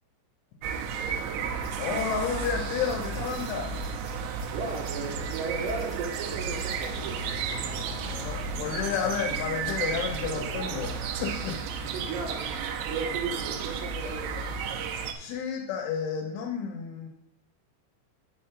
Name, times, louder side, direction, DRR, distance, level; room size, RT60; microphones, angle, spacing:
sound 1, 0.6-15.1, right 6 dB, 90° right, 2.5 m, -33 dB
sound 2, 1.4-8.7, left 3 dB, 30° left, 2.4 m, -45 dB
voice 1, 1.8-3.8 7.8-11.9 15.1-17.1, left 7 dB, 80° left, 3 dB, 3.1 m, -31 dB
voice 2, 4.5-7.2 7.5-7.7 11.8-12.5 12.9-14.5, right 4 dB, 70° right, 0 dB, 2.9 m, -35 dB
6.1 x 5.6 x 6.7 m, 0.80 s
omnidirectional pair, 5.8 m